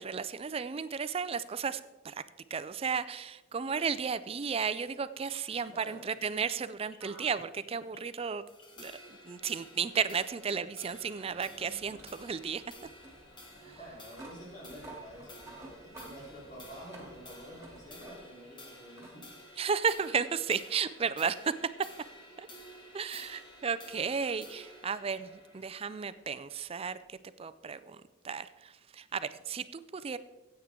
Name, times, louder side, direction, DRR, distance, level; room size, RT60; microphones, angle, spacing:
voice 1, 0.0-2.2 2.5-8.4 8.8-8.9 9.2-12.6 13.7-13.8 19.6-21.5 22.4-22.5 22.9-30.2, right 6 dB, 30° right, 14 dB, 0.4 m, -34 dB
sound 1, 5.2-9.1 9.7-9.8, left 2 dB, 70° left, 3.0 m, -57 dB
voice 2, 5.7-6.3 13.8-19.3, equal, 40° left, -4 dB, 3.7 m, -49 dB
sound 2, 8.5-27.1, left 1 dB, 25° left, 1.6 m, -53 dB
sound 3, 9.9-18.5 19.0-19.2 20.5-20.6 23.5-23.6, right 2 dB, 15° right, 2.7 m, -53 dB
15.5 x 8.7 x 3.7 m, 1.1 s
head